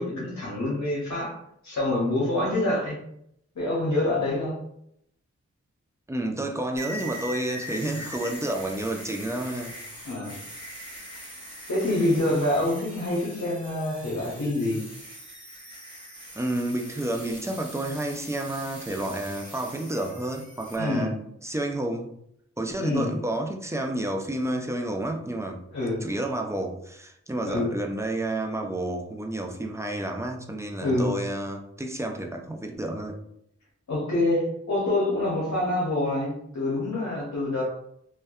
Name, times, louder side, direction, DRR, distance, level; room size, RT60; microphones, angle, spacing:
voice 1, 0.0-1.4 1.6-3.0 3.6-4.6 10.0-10.4 11.7-14.8 20.8-21.1 22.8-23.1 25.7-26.0 27.5-27.7 30.8-31.1 33.9-37.6, left 1 dB, 70° left, -5 dB, 0.8 m, -26 dB
voice 2, 6.1-9.8 16.4-21.2 21.4-22.1 22.6-25.6 26.0-33.2, right 1 dB, 10° right, 2 dB, 0.3 m, -30 dB
sound 1, 6.8-20.8, equal, 15° left, 1.1 m, -42 dB
2.6 x 2.1 x 2.3 m, 0.73 s
wide cardioid pair, 60°, 29 cm